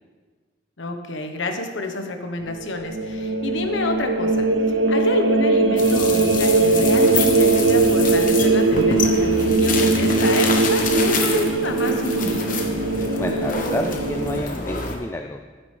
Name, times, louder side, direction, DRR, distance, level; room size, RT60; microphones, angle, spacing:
voice 1, 0.8-12.6, left 2 dB, 75° left, 5 dB, 1.1 m, -28 dB
sound 1, 2.5-14.4, right 3 dB, 70° right, 0.7 m, -20 dB
sound 2, 5.8-15.0, left 4 dB, 45° left, 1.1 m, -28 dB
voice 2, 13.2-15.4, left 1 dB, 15° left, 5 dB, 0.3 m, -29 dB
12.0 x 9.9 x 3.4 m, 1.5 s
head